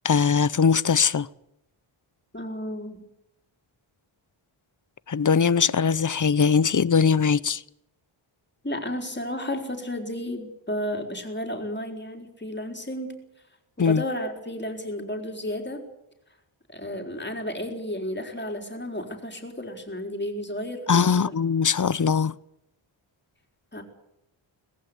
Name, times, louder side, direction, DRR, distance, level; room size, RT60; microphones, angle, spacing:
voice 1, 0.0-1.3 5.1-7.6 13.8-14.0 20.9-22.4, left 6 dB, 40° left, 0.7 m, -21 dB
voice 2, 2.3-3.0 8.6-13.2 13.8-15.8 16.7-21.3 23.7-23.8, left 1 dB, 20° left, 4.2 m, -32 dB
20.0 x 15.5 x 9.8 m
wide cardioid pair, 100°, 50 cm